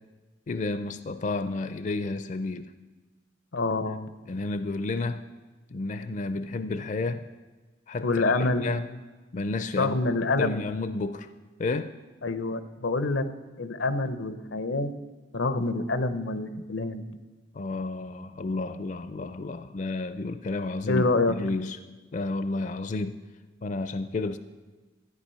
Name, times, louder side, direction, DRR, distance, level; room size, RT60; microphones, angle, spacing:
voice 1, 0.5-2.7 4.3-5.3 5.7-7.3 7.9-8.9 9.3-10.0 10.4-11.3 11.6-11.9 17.5-21.8 22.1-23.2 23.6-24.4, left 3 dB, 40° left, 11 dB, 0.4 m, -31 dB
voice 2, 3.5-4.1 8.0-8.8 9.8-10.7 12.2-13.2 13.6-14.9 15.3-17.2 20.9-21.4, left 2 dB, 85° left, 11 dB, 0.8 m, -27 dB
13.5 x 9.3 x 5.6 m, 1.3 s
head